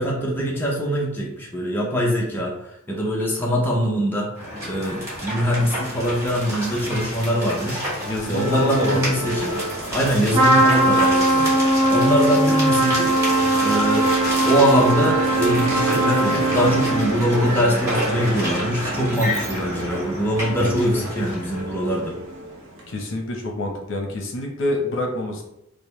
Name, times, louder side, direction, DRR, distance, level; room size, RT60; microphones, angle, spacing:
voice 1, 0.0-4.3 4.6-7.8 8.3-9.5 9.9-13.1 13.6-14.1 14.5-22.2, equal, 10° left, -3 dB, 0.6 m, -23 dB
sound 1, 4.3-21.6, equal, 15° right, 1.4 m, -30 dB
voice 2, 8.0-9.1 20.6-21.0 22.9-25.5, left 1 dB, 65° left, 1 dB, 0.7 m, -27 dB
Musical instrument, 8.4-23.1, right 1 dB, 75° right, 0.7 m, -31 dB
Trumpet, 10.3-17.2, right 1 dB, 30° right, 0.9 m, -20 dB
5.1 x 2.1 x 3.0 m, 0.80 s
head